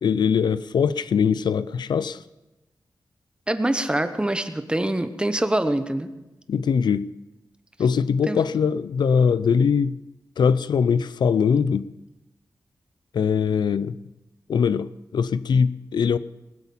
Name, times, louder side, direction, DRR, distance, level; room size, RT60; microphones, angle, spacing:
voice 1, 0.0-2.2 6.5-7.1 7.8-10.0 10.4-11.9 13.1-14.0 14.5-16.2, left 6 dB, 90° left, 0.4 m, -21 dB
voice 2, 3.5-6.1 8.3-8.4, right 1 dB, 15° right, 0.9 m, -24 dB
20.0 x 8.0 x 7.2 m
wide cardioid pair, 135°, 7 cm